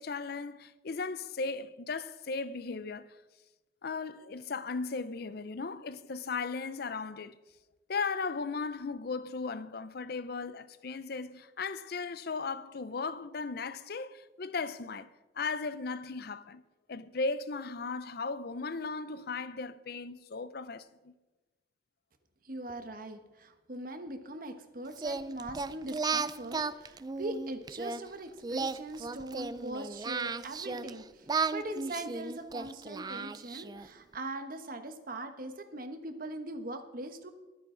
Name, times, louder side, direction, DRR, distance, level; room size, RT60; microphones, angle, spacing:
voice 1, 0.0-3.1 3.8-7.4 7.9-15.1 15.4-16.6 16.9-21.1, left 4 dB, 60° left, 0.6 m, -36 dB
voice 2, 22.4-37.3, right 1 dB, 50° right, 1.3 m, -41 dB
Singing, 25.0-28.0 28.4-30.9 31.3-33.9, right 4 dB, 20° right, 0.4 m, -34 dB
21.5 x 9.3 x 3.9 m
head